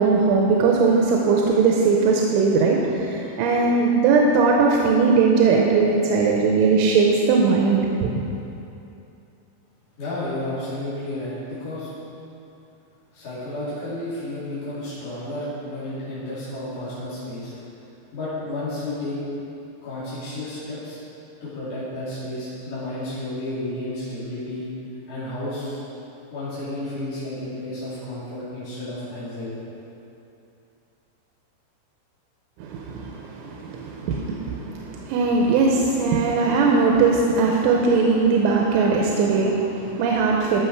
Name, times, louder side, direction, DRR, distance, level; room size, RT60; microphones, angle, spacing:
voice 1, 0.0-8.1 32.6-40.6, right 4 dB, 90° right, -1 dB, 3.2 m, -19 dB
voice 2, 10.0-11.9 13.1-17.5 18.1-19.2 19.8-21.0 21.4-24.7 25.1-25.8 26.3-29.5, left 1 dB, 35° left, -13 dB, 3.0 m, -32 dB
13.5 x 6.3 x 4.7 m, 2.8 s
omnidirectional pair, 5.5 m